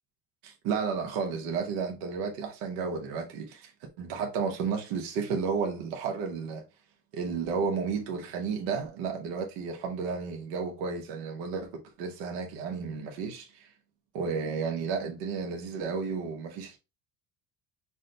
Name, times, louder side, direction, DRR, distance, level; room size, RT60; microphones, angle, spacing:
voice 1, 0.4-3.7 4.0-6.6 7.1-11.7 12.0-13.7 14.1-16.8, right 5 dB, 80° right, 1.3 m, -32 dB
6.1 x 2.2 x 3.9 m
supercardioid pair, 100°, 46 cm